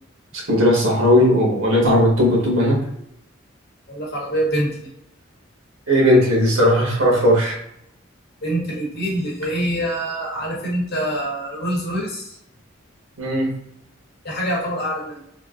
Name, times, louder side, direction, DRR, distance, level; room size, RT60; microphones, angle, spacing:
voice 1, 0.3-2.8 5.9-7.6 13.2-13.5, equal, 85° right, -3 dB, 1.4 m, -17 dB
voice 2, 3.9-4.7 8.4-12.4 14.2-15.2, right 1 dB, 55° left, -3 dB, 1.2 m, -25 dB
3.6 x 2.7 x 2.5 m, 0.76 s
head